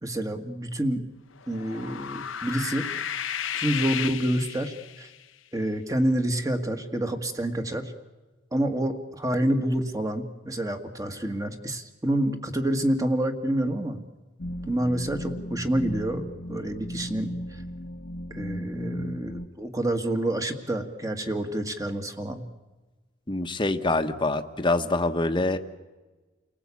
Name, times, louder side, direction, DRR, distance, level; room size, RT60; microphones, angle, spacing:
voice 1, 0.0-1.0 1.5-2.9 3.5-5.1 5.5-7.9 8.5-14.0 14.7-17.4 18.3-22.5, right 1 dB, 15° right, 6 dB, 1.9 m, -28 dB
sound 1, 1.4-5.2, left 9 dB, 75° left, 1.0 m, -33 dB
sound 2, 14.4-19.5, equal, 50° left, 1.1 m, -36 dB
voice 2, 23.3-25.6, left 2 dB, 25° left, 8 dB, 1.2 m, -25 dB
29.5 x 19.0 x 8.5 m, 1.2 s
head